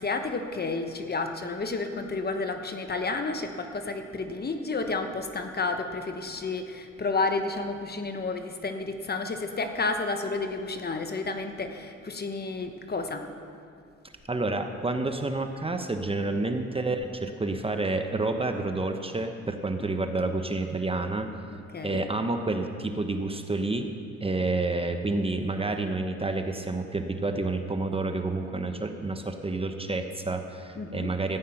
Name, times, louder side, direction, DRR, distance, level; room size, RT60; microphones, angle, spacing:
voice 1, 0.0-13.2 21.5-22.0 30.7-31.1, left 3 dB, 30° left, 6 dB, 1.1 m, -31 dB
voice 2, 14.3-21.3 21.8-23.9 24.2-31.4, right 2 dB, 20° right, 6 dB, 0.9 m, -29 dB
14.0 x 9.4 x 5.9 m, 2.3 s
cardioid pair, 90°, 30 cm